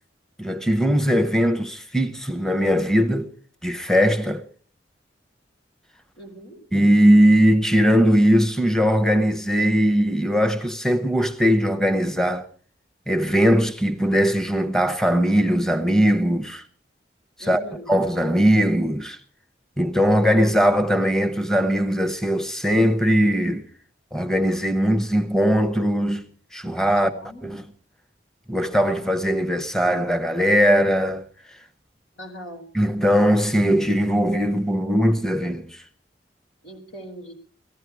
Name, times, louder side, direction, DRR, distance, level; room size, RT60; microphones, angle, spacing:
voice 1, 0.4-3.3 3.6-4.4 6.7-12.5 13.1-16.6 17.4-19.2 19.8-23.6 24.1-26.2 26.5-27.1 27.4-27.6 28.5-31.6 32.7-35.8, equal, 5° left, 0.7 m, -20 dB
voice 2, 6.1-6.6 17.4-17.9 27.0-27.5 32.2-32.7 36.6-37.3, equal, 90° left, 4.2 m, -40 dB
18.5 x 15.0 x 4.7 m
head